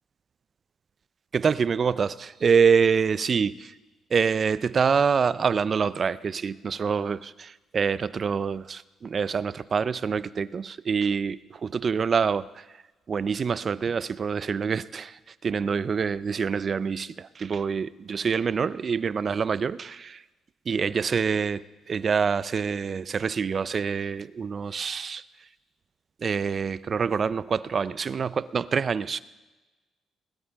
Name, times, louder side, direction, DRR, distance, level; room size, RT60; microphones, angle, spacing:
voice 1, 1.3-3.7 4.1-12.6 13.1-20.2 20.7-25.2 26.2-29.2, right 6 dB, 45° right, 0.5 m, -26 dB
20.5 x 13.0 x 3.5 m
cardioid pair, 90°, 0 cm